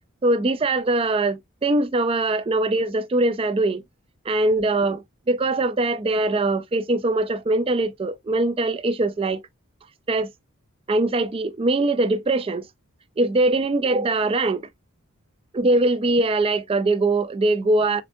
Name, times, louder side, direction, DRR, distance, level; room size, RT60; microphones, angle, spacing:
voice 1, 0.2-3.8 4.3-9.4 10.1-10.3 10.9-12.7 13.2-14.7 15.5-18.0, right 2 dB, 25° right, 0.3 m, -22 dB
6.7 x 2.5 x 2.6 m
head